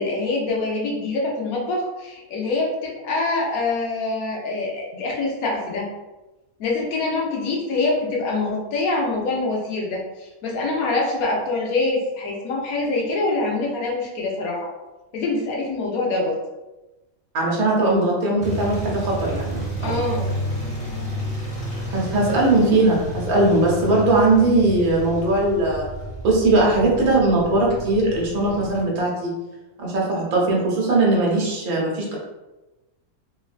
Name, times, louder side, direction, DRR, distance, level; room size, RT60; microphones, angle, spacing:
voice 1, 0.0-5.9 6.6-14.7 15.1-16.4 19.8-20.3, left 3 dB, 80° left, -1 dB, 1.1 m, -25 dB
voice 2, 17.3-19.9 21.9-25.9 26.2-29.3 29.8-32.2, right 2 dB, 85° right, -3 dB, 1.2 m, -20 dB
sound 1, 18.4-28.8, right 1 dB, 10° left, 0.5 m, -31 dB
3.1 x 2.2 x 2.4 m, 1.1 s
omnidirectional pair, 1.5 m